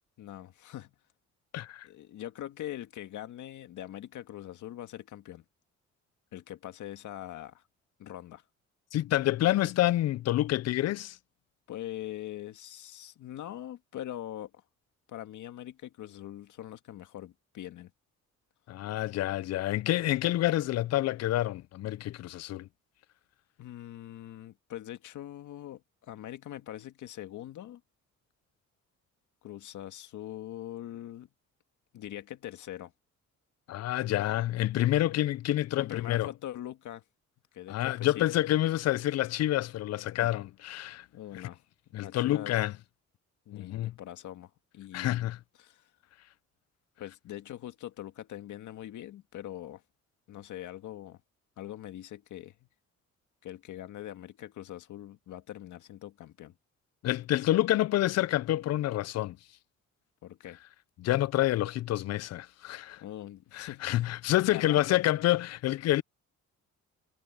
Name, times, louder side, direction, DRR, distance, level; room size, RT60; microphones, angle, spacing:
voice 1, 0.2-0.9 1.8-5.4 6.3-7.6 8.0-8.4 11.7-14.5 15.1-17.9 23.6-27.8 29.4-31.3 31.9-32.9 35.8-37.0 37.5-38.3 40.2-40.3 41.1-41.6 42.0-42.6 43.5-45.3 45.6-45.8 47.0-49.8 50.3-51.2 51.6-52.7 53.4-56.5 60.2-60.6 63.0-64.0 64.5-65.0, left 12 dB, 75° left, 1.9 m, -42 dB
voice 2, 1.5-1.9 8.9-11.2 18.7-22.7 33.7-36.3 37.7-41.1 41.3-41.4 41.9-42.7 43.5-43.9 44.9-45.4 57.0-59.4 61.0-63.0 63.5-66.0, left 14 dB, 60° left, 0.5 m, -28 dB
cardioid pair, 90°, 30 cm